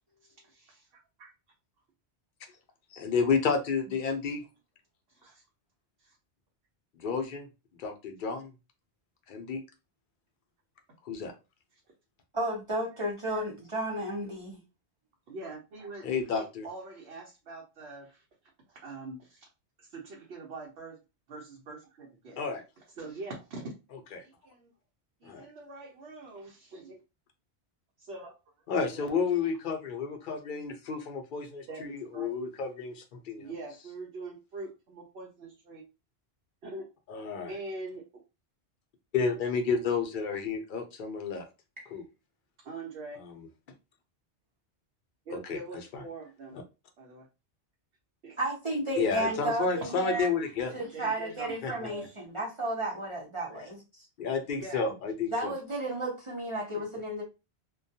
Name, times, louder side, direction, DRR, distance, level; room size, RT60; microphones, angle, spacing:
voice 1, 0.2-1.3 5.2-5.4 6.0-6.2 15.3-18.2 18.7-19.5 19.8-21.0 21.3-22.4 23.0-23.7 24.2-24.7 25.2-27.0 28.0-28.4 28.9-29.3 31.7-32.3 33.4-35.8 36.6-36.9 37.5-38.0 42.6-43.2 45.3-46.6 47.0-47.3 48.2-48.4 49.5-50.0 50.8-51.5 51.9-52.1 54.6-54.9, right 3 dB, 75° right, 0.9 m, -43 dB
voice 2, 2.9-4.4 7.0-7.5 7.8-8.5 9.3-9.6 11.1-11.3 16.0-16.7 22.4-22.6 24.1-24.2 25.2-25.4 28.7-33.5 37.1-37.5 39.1-41.4 41.9-42.0 45.3-45.6 49.0-50.7 51.6-51.7 54.2-55.5, left 5 dB, 60° left, 0.6 m, -31 dB
voice 3, 12.3-14.6 41.8-41.9 48.4-50.3 50.7-54.1 55.3-57.2, right 1 dB, 35° right, 0.6 m, -33 dB
2.3 x 2.2 x 2.6 m
omnidirectional pair, 1.1 m